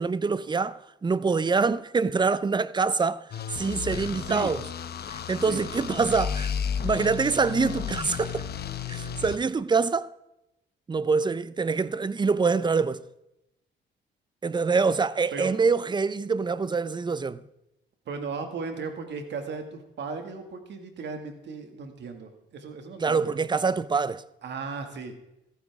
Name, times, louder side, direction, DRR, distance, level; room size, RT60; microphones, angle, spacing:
voice 1, 0.0-3.3 3.5-4.6 5.1-6.5 6.8-8.5 8.9-10.1 10.9-13.0 14.4-17.4 23.0-24.2, right 4 dB, 20° right, 0.6 m, -25 dB
sound 1, 3.3-9.4, left 8 dB, 55° left, 1.0 m, -33 dB
voice 2, 18.1-23.4 24.4-25.2, right 4 dB, 60° right, 2.1 m, -36 dB
14.5 x 13.5 x 3.6 m
cardioid pair, 90°, 20 cm